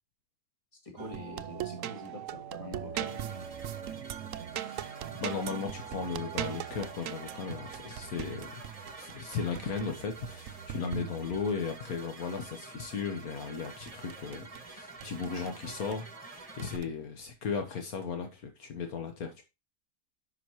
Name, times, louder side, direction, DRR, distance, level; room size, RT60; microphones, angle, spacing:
voice 1, 0.8-3.1, left 2 dB, 20° left, 1 dB, 2.5 m, -45 dB
sound 1, 1.0-11.6 13.4-14.6 15.0-16.0 16.6-16.9, right 11 dB, 65° right, 0.9 m, -40 dB
sound 2, 3.1-16.8, right 3 dB, 25° right, 1.2 m, -48 dB
voice 2, 4.5-8.5 8.9-19.4, left 5 dB, 70° left, 5 dB, 1.6 m, -36 dB
10.0 x 5.8 x 3.0 m, 0.25 s
omnidirectional pair, 1.6 m